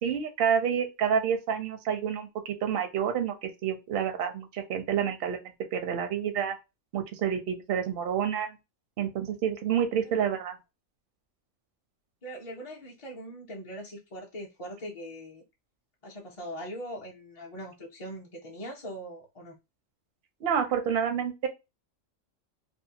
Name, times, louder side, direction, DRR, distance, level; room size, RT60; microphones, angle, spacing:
voice 1, 0.0-5.4 5.7-6.6 6.9-8.6 9.0-10.5 20.4-21.5, right 8 dB, 65° right, 0.6 m, -28 dB
voice 2, 12.2-15.4 16.0-19.6, equal, 40° left, 0.4 m, -41 dB
2.7 x 2.1 x 2.7 m
omnidirectional pair, 1.4 m